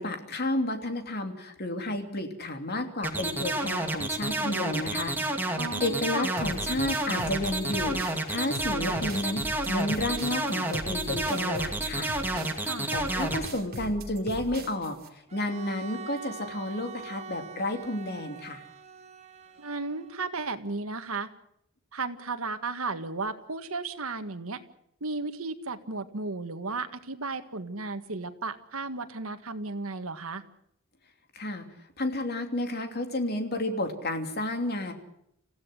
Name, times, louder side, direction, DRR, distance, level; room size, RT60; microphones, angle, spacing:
voice 1, 0.0-5.2 5.8-8.0 8.3-12.2 12.9-15.0 15.3-18.6 31.3-31.7 32.0-34.9, left 1 dB, 50° left, 5 dB, 3.0 m, -31 dB
sound 1, 3.0-13.4, right 1 dB, 10° right, 2.5 m, -30 dB
voice 2, 5.6-6.0 12.6-12.9 19.6-21.3 21.9-24.6 25.0-30.4, right 3 dB, 75° right, 8 dB, 1.8 m, -34 dB
sound 2, 6.4-15.1, right 1 dB, 45° right, 2.8 m, -40 dB
Bowed string instrument, 15.3-20.3, right 5 dB, 30° right, 1.8 m, -44 dB
27.0 x 16.0 x 7.8 m, 0.77 s
head